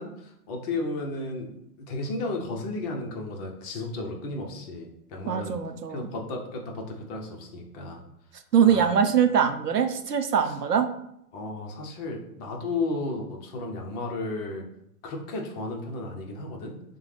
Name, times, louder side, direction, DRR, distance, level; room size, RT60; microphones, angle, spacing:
voice 1, 0.0-5.6 5.9-8.0 8.6-8.9 10.4-10.6 11.3-14.6 15.0-16.7, left 2 dB, 25° left, 1 dB, 0.7 m, -34 dB
voice 2, 5.3-6.0 8.5-10.9, right 7 dB, 85° right, 8 dB, 0.7 m, -22 dB
6.5 x 2.2 x 3.2 m, 0.76 s
figure-of-eight pair, 120°, 46 cm